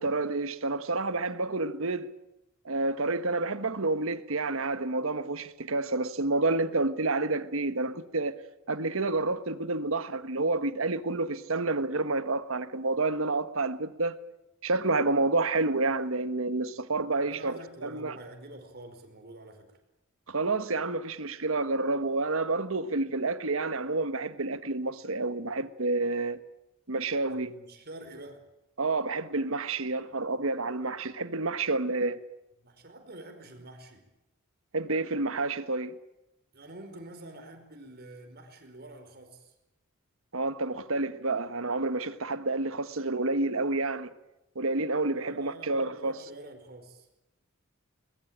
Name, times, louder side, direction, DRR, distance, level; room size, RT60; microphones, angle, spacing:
voice 1, 0.0-2.1 2.6-8.4 8.7-14.2 14.6-17.5 17.8-18.2 20.3-26.4 26.9-27.5 28.8-32.2 34.7-36.0 40.3-44.1 44.5-46.1, right 3 dB, 70° right, 1.4 m, -29 dB
voice 2, 17.2-19.8 27.3-28.4 32.6-34.0 36.5-39.5 45.1-47.1, right 1 dB, 50° right, 4.9 m, -47 dB
22.0 x 20.5 x 8.9 m
head